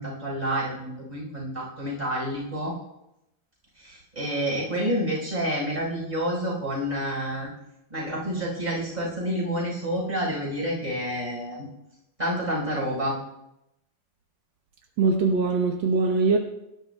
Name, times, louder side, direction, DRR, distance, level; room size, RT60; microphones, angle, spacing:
voice 1, 0.0-2.7 3.8-7.5 7.9-11.6 12.2-13.1, equal, 15° right, -4 dB, 4.5 m, -29 dB
voice 2, 15.0-16.4, right 4 dB, 75° right, 2 dB, 1.1 m, -22 dB
18.5 x 12.0 x 2.2 m, 0.87 s
omnidirectional pair, 3.3 m